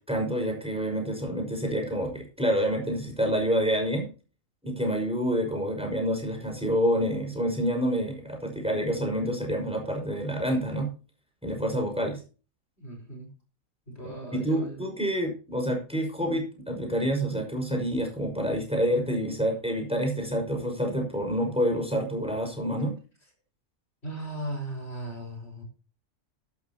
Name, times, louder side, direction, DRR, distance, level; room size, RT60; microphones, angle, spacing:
voice 1, 0.1-4.1 4.6-10.9 11.4-12.2 14.0-23.0, equal, 5° right, 1 dB, 5.6 m, -28 dB
voice 2, 12.8-13.3 13.9-14.9 24.0-25.6, right 1 dB, 50° left, 2 dB, 5.0 m, -37 dB
13.0 x 12.5 x 3.0 m, 0.35 s
omnidirectional pair, 1.4 m